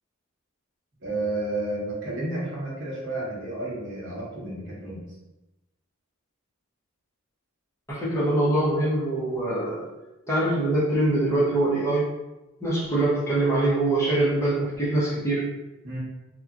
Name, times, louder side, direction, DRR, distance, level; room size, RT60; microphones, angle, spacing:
voice 1, 1.0-5.0 15.8-16.0, right 2 dB, 55° right, -6 dB, 1.0 m, -31 dB
voice 2, 7.9-9.8 10.3-12.0 12.6-15.5, right 2 dB, 10° left, -7 dB, 0.7 m, -23 dB
2.8 x 2.3 x 2.4 m, 1.0 s
head